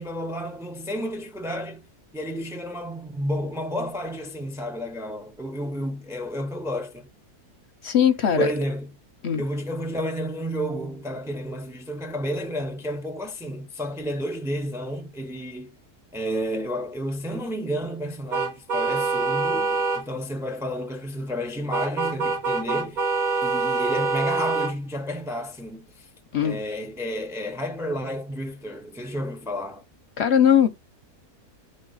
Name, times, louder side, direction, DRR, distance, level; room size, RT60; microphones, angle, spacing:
voice 1, 0.0-1.8 2.1-7.1 8.4-8.9 9.4-15.7 16.1-23.1 23.4-26.1 26.4-29.8, equal, 5° right, 0.4 m, -31 dB
voice 2, 7.8-8.5 9.2-9.4 26.3-26.6 30.2-30.7, left 9 dB, 55° left, 0.8 m, -19 dB
sound 1, 18.3-20.0 21.7-24.7, right 4 dB, 30° right, 1.3 m, -25 dB
10.5 x 4.0 x 3.9 m
omnidirectional pair, 1.6 m